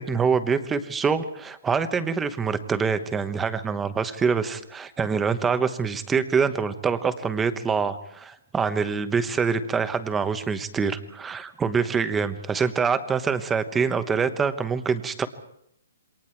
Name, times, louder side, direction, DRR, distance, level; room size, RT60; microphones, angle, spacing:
voice 1, 0.0-15.3, right 5 dB, 10° right, 11 dB, 1.0 m, -25 dB
27.5 x 24.0 x 4.6 m, 0.74 s
hypercardioid pair, 170°, 0 cm